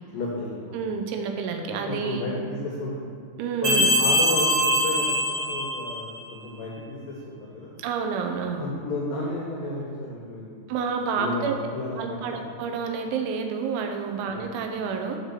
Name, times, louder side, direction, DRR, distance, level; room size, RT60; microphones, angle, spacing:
voice 1, 0.1-0.8 1.8-3.0 3.6-7.7 8.6-10.6 11.2-11.5 11.7-12.0 12.4-12.5 14.3-14.5, left 2 dB, 90° left, -3 dB, 1.9 m, -32 dB
voice 2, 0.7-2.3 3.4-3.9 7.8-8.7 10.7-11.6 12.0-15.2, right 5 dB, 85° right, 4 dB, 3.2 m, -29 dB
sound 1, 3.6-6.2, equal, 45° right, 2.6 m, -23 dB
7.2 x 4.8 x 6.7 m, 2.1 s
omnidirectional pair, 5.3 m